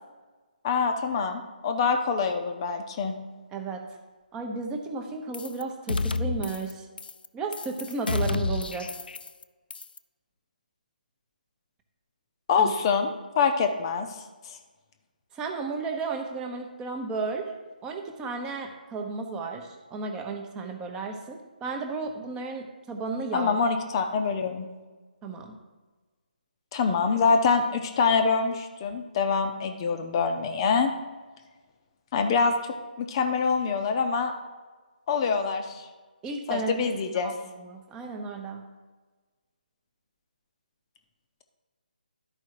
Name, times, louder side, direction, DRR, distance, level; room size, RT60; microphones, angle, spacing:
voice 1, 0.6-3.1 12.5-13.1 13.4-14.1 23.3-24.7 26.7-30.9 32.1-32.5 33.0-34.3 35.1-35.8 36.5-37.3, left 5 dB, 30° left, 5 dB, 0.7 m, -25 dB
voice 2, 3.5-3.8 4.3-6.9 7.3-8.9 12.6-12.7 15.3-17.5 17.8-23.6 25.2-25.6 36.2-37.0 37.2-38.6, right 4 dB, 15° right, 4 dB, 0.8 m, -33 dB
sound 1, 5.3-5.6 5.9-6.7 7.0-7.3 7.5-9.4 9.7-10.0, left 3 dB, 70° left, 0.5 m, -30 dB
11.5 x 4.8 x 4.7 m, 1.3 s
figure-of-eight pair, 150°, 5 cm